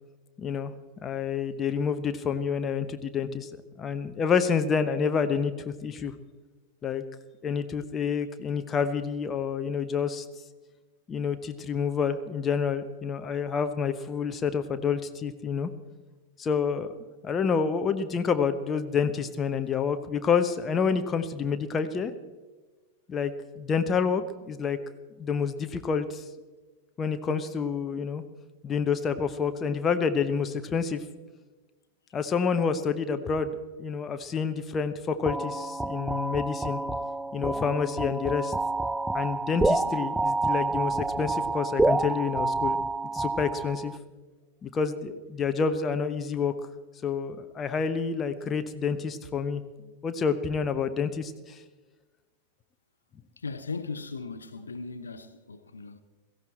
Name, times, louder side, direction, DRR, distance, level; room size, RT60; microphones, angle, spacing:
voice 1, 0.4-0.7 1.0-3.5 3.8-6.1 6.8-7.0 7.4-10.2 11.1-15.7 16.4-16.9 17.2-22.1 23.1-24.8 25.2-26.2 27.0-28.2 28.6-31.0 32.1-33.5 33.8-36.8 37.3-38.5 39.1-42.8 43.1-43.9 44.6-46.5 47.0-51.6, left 6 dB, 25° left, 0.9 m, -28 dB
sound 1, 35.3-44.0, right 2 dB, 5° right, 0.4 m, -28 dB
voice 2, 53.4-56.0, left 4 dB, 75° left, 0.8 m, -37 dB
17.0 x 15.0 x 4.4 m
figure-of-eight pair, 90°, 0 cm